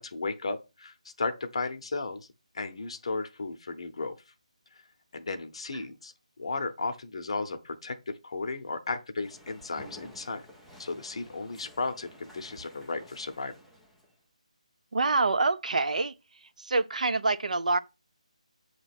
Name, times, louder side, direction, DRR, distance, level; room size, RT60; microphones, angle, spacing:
voice 1, 0.0-2.3 2.5-4.1 5.1-6.1 6.4-10.4 10.8-13.5, left 3 dB, 50° left, 0.7 m, -34 dB
sound 1, 9.2-14.1, equal, ahead, 0.3 m, -52 dB
voice 2, 14.9-16.1 16.6-17.8, right 3 dB, 85° right, 0.6 m, -26 dB
7.8 x 2.9 x 5.8 m
hypercardioid pair, 175°, 4 cm